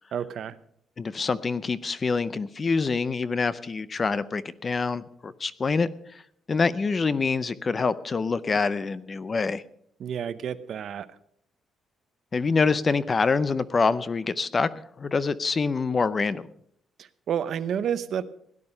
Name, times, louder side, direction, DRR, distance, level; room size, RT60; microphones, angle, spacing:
voice 1, 0.1-0.5 10.0-11.1 17.0-18.2, right 8 dB, 50° right, 13 dB, 0.7 m, -30 dB
voice 2, 1.0-5.9 6.5-9.6 12.3-14.7 15.0-16.5, left 4 dB, 25° left, 16 dB, 0.4 m, -25 dB
16.5 x 11.0 x 5.4 m, 0.68 s
cardioid pair, 175°, 0 cm